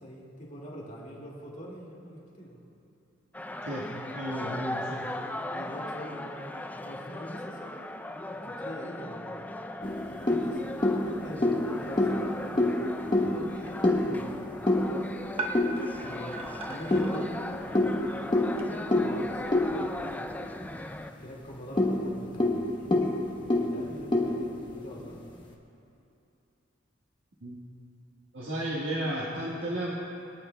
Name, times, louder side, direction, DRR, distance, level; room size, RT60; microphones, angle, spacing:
voice 1, 0.0-2.6 5.5-6.4 6.8-7.8 8.3-9.4 10.1-15.0 16.0-18.0 18.6-20.5 21.2-25.2, equal, 40° left, -4 dB, 2.0 m, -44 dB
sound 1, 3.3-21.1, left 1 dB, 10° left, 0.4 m, -38 dB
voice 2, 4.1-5.0 27.4-27.6 28.3-29.9, right 1 dB, 75° right, -6 dB, 1.4 m, -33 dB
sound 2, 9.8-16.2 16.9-20.8 21.1-21.2 21.6-25.1, left 1 dB, 25° left, 1.0 m, -28 dB
sound 3, 13.5-18.7, right 2 dB, 30° right, 1.0 m, -41 dB
25.0 x 9.3 x 2.2 m, 2.8 s
head